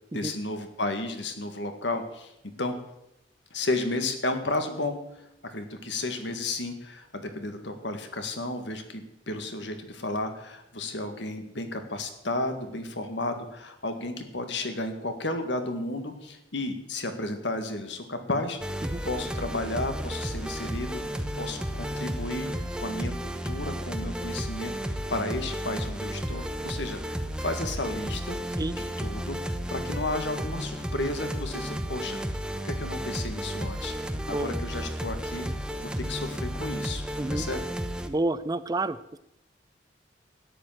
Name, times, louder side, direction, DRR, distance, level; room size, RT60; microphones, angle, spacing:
voice 1, 0.1-2.3 2.6-2.7 3.5-5.0 5.4-22.5 22.8-23.1 23.4-28.4 29.0-35.5 35.8-37.0 37.3-37.7, left 2 dB, 70° left, 7 dB, 2.0 m, -33 dB
sound 1, 18.6-38.1, equal, 5° right, 0.9 m, -33 dB
voice 2, 37.2-37.5 38.1-39.2, right 2 dB, 20° right, 14 dB, 0.4 m, -29 dB
13.0 x 10.0 x 7.5 m, 0.84 s
head